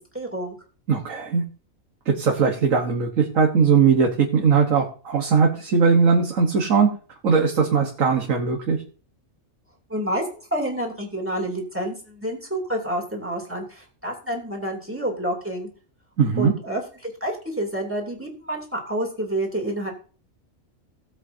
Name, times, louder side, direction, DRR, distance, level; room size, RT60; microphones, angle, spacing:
voice 1, 0.1-0.5 9.9-15.7 16.4-19.9, right 1 dB, 10° right, -1 dB, 2.9 m, -28 dB
voice 2, 0.9-1.4 2.1-6.9 7.2-8.8 16.2-16.5, right 5 dB, 70° right, 2 dB, 1.7 m, -19 dB
18.5 x 8.0 x 2.8 m, 0.39 s
omnidirectional pair, 1.4 m